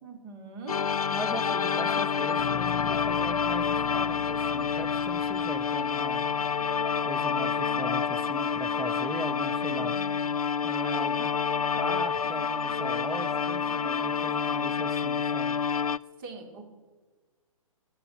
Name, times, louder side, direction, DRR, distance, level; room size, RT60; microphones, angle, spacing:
voice 1, 0.0-0.9 9.8-10.3 10.8-11.0 16.2-16.7, right 3 dB, 35° right, 3 dB, 2.6 m, -43 dB
sound 1, 0.7-16.0, left 6 dB, 85° left, 0.4 m, -28 dB
voice 2, 1.1-6.2 7.0-9.9 10.6-11.3 11.8-15.6, right 1 dB, ahead, 7 dB, 0.3 m, -39 dB
sound 2, 2.4-7.0, left 10 dB, 40° left, 0.6 m, -41 dB
16.0 x 7.2 x 8.9 m, 1.3 s
figure-of-eight pair, 130°, 18 cm